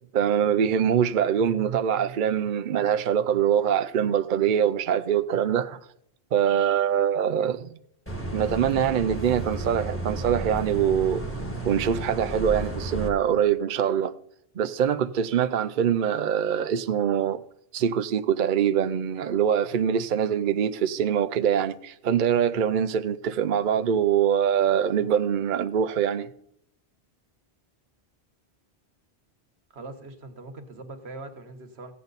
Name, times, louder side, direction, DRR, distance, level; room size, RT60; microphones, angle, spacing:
voice 1, 0.1-5.8 6.3-7.7 8.3-11.2 11.6-14.1 14.6-17.4 17.7-26.3, right 8 dB, 60° right, 0.6 m, -24 dB
sound 1, 8.1-13.1, right 2 dB, 10° left, 1.6 m, -32 dB
voice 2, 29.7-31.9, right 2 dB, 75° right, 1.5 m, -41 dB
16.0 x 8.5 x 4.0 m
omnidirectional pair, 1.1 m